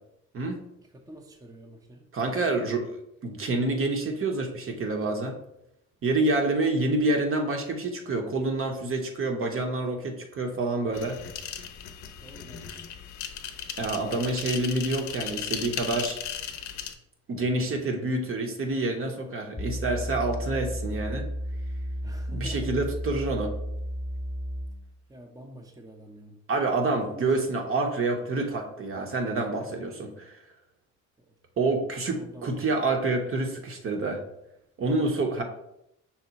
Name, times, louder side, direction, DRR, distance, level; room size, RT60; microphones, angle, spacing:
voice 1, 0.9-2.0 12.2-12.8 22.0-22.9 25.1-26.4 27.0-27.4 31.2-31.3 32.1-32.9, right 1 dB, 10° right, 2 dB, 0.6 m, -47 dB
voice 2, 2.1-5.4 6.0-11.2 13.8-16.2 17.3-21.3 22.3-23.5 26.5-30.3 31.6-34.2 34.8-35.4, right 2 dB, 45° right, 3 dB, 0.8 m, -27 dB
sound 1, 10.9-16.9, left 8 dB, 70° left, 0.6 m, -36 dB
sound 2, 19.6-24.9, equal, 15° left, 0.9 m, -33 dB
5.7 x 2.1 x 4.0 m, 0.81 s
cardioid pair, 90°, 30 cm